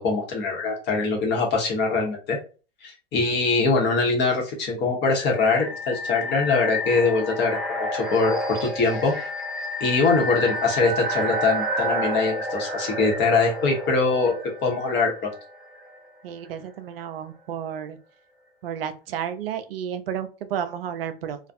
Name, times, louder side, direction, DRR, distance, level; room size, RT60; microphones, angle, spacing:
voice 1, 0.0-2.4 2.8-9.1 9.8-14.3 14.6-15.3, left 4 dB, 35° left, 0 dB, 1.0 m, -23 dB
sound 1, 5.2-16.0, equal, ahead, 1.0 m, -30 dB
voice 2, 16.2-18.0 18.6-21.4, right 9 dB, 75° right, 9 dB, 0.5 m, -32 dB
2.4 x 2.3 x 2.6 m, 0.35 s
hypercardioid pair, 100°, 30 cm